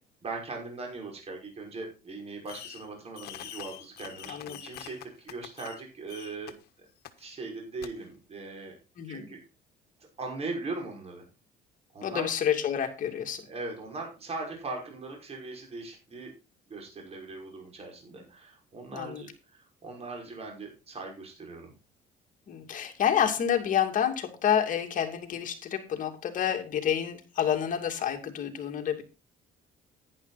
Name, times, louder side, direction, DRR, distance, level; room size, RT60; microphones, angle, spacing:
voice 1, 0.2-6.5 7.2-8.7 9.1-9.4 10.2-11.3 11.9-12.3 13.5-16.3 16.7-21.7, right 3 dB, 35° right, 1 dB, 5.6 m, -39 dB
Fireworks, 2.5-2.9 3.1-5.8 6.1-6.5 7.0-7.1 7.8-7.9, left 12 dB, 70° left, 1.4 m, -44 dB
voice 2, 4.3-4.6 9.0-9.3 12.0-13.5 18.9-19.3 22.5-29.0, left 9 dB, 50° left, 4 dB, 2.6 m, -29 dB
10.5 x 10.5 x 4.1 m, 0.29 s
cardioid pair, 110°, 17 cm